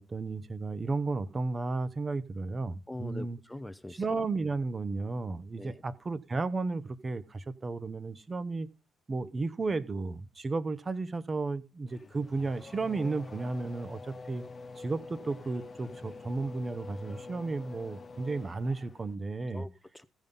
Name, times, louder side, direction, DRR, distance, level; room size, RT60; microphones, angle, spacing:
voice 1, 0.0-3.4 4.0-8.7 9.1-14.4 14.8-19.6, right 3 dB, 30° right, 1.0 m, -33 dB
voice 2, 2.9-4.0 5.6-5.8 15.9-16.0 19.5-20.0, left 1 dB, 10° left, 0.6 m, -43 dB
Race car auto racing / Accelerating revving vroom, 11.9-19.1, left 3 dB, 35° left, 0.8 m, -46 dB
15.5 x 5.5 x 5.3 m
cardioid pair, 90°, 0 cm